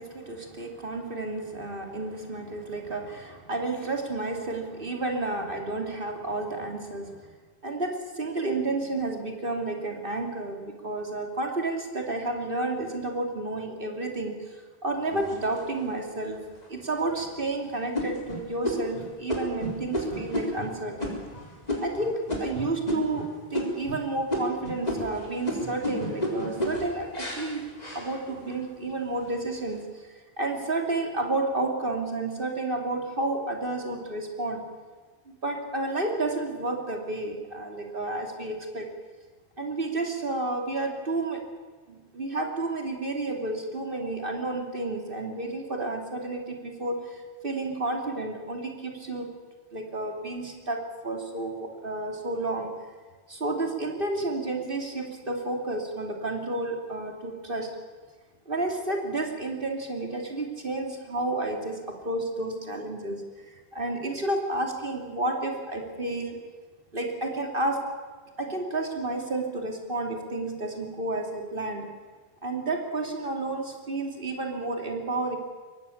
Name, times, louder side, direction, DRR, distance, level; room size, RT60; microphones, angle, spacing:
voice 1, 0.0-7.3 7.6-16.4 16.7-21.2 21.8-27.6 27.9-34.6 35.3-38.9 39.6-41.4 41.9-49.3 49.7-52.7 53.3-57.7 58.5-66.4 66.9-67.8 68.4-71.9 72.4-75.4, right 2 dB, 55° right, 3 dB, 3.1 m, -31 dB
sound 1, 15.1-16.0 16.6-16.7 17.1-17.5 17.9-23.3 23.5-24.0 24.3-28.6 29.1-29.6, left 1 dB, 40° left, 4.2 m, -32 dB
23.0 x 18.5 x 7.2 m, 1.4 s
omnidirectional pair, 1.1 m